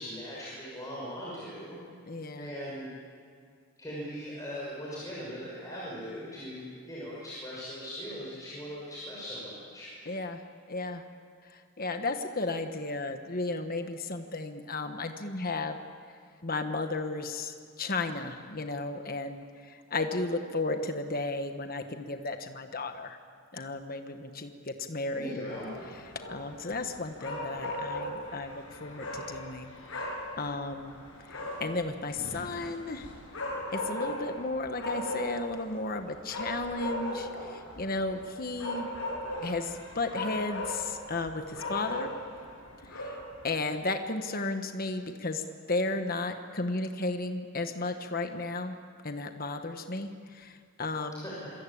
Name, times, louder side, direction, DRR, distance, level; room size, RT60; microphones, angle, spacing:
voice 1, 0.0-1.8 2.4-2.9 3.8-9.9 25.1-25.7 51.1-51.5, equal, 15° left, -6 dB, 6.0 m, -40 dB
voice 2, 2.1-2.5 10.1-10.4 10.7-11.0 11.8-15.8 16.4-23.2 23.5-25.6 26.3-30.1 30.4-31.0 31.6-33.1 33.7-38.9 39.4-42.1 42.9-43.1 43.4-45.4 45.7-48.7 49.0-51.2, left 3 dB, 45° left, 6 dB, 1.3 m, -34 dB
sound 1, 25.5-43.5, left 1 dB, 75° left, 6.6 m, -38 dB
26.5 x 23.0 x 8.7 m, 2.1 s
head